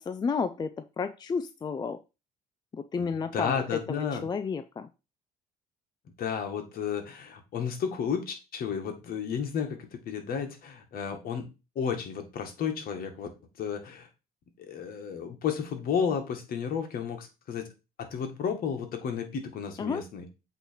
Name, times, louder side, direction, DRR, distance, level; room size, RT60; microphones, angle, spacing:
voice 1, 0.0-2.0 2.7-3.6 3.9-4.9 19.8-20.0, left 5 dB, 25° left, 9 dB, 0.4 m, -32 dB
voice 2, 3.0-4.3 6.2-11.5 11.7-13.3 13.6-14.1 14.6-17.7 18.0-20.3, left 7 dB, 60° left, 5 dB, 1.7 m, -32 dB
8.0 x 3.2 x 4.6 m, 0.28 s
cardioid pair, 110°, 17 cm